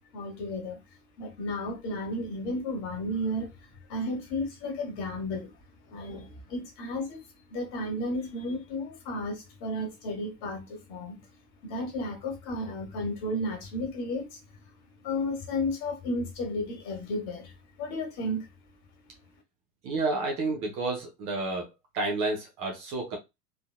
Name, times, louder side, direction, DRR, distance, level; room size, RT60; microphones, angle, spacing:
voice 1, 0.1-0.8 1.2-5.5 5.9-7.2 7.5-11.2 11.6-14.4 15.0-18.5, left 1 dB, 40° left, 1.4 m, -33 dB
voice 2, 19.8-23.2, right 3 dB, 15° right, 0.3 m, -30 dB
4.0 x 2.7 x 2.3 m
figure-of-eight pair, 85°, 48 cm